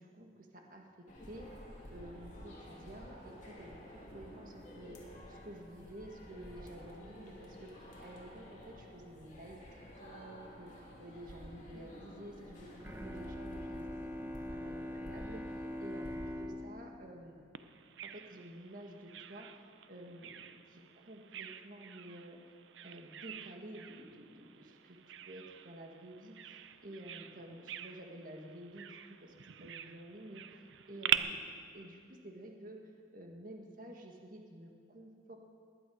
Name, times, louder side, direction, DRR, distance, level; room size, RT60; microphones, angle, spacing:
voice 1, 0.0-1.5 1.9-17.4 18.0-22.4 22.8-25.0 25.3-30.4 30.9-32.8 33.1-35.4, right 1 dB, 50° right, 2 dB, 1.6 m, -51 dB
sound 1, 1.1-16.1, equal, 45° left, 2.8 m, -51 dB
Bowed string instrument, 12.8-18.4, left 1 dB, 15° right, 1.1 m, -44 dB
Bird vocalization bird call bird song, 17.5-31.2, right 10 dB, 90° right, 0.6 m, -43 dB
19.5 x 11.0 x 5.1 m, 2.2 s
head